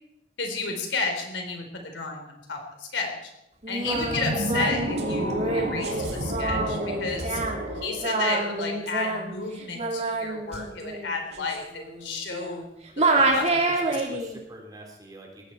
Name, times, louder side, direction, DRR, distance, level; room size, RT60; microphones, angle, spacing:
voice 1, 0.4-3.2 3.7-7.4 7.8-12.6 13.2-13.8, left 3 dB, 80° left, 3 dB, 3.9 m, -32 dB
Singing, 3.6-12.7 13.0-14.4, right 2 dB, 40° right, 2.8 m, -28 dB
voice 2, 3.8-4.1 13.1-15.5, right 1 dB, 20° right, 0 dB, 4.0 m, -42 dB
sound 1, 3.9-9.1, equal, 75° right, 5.8 m, -31 dB
18.0 x 15.5 x 4.5 m, 0.89 s
head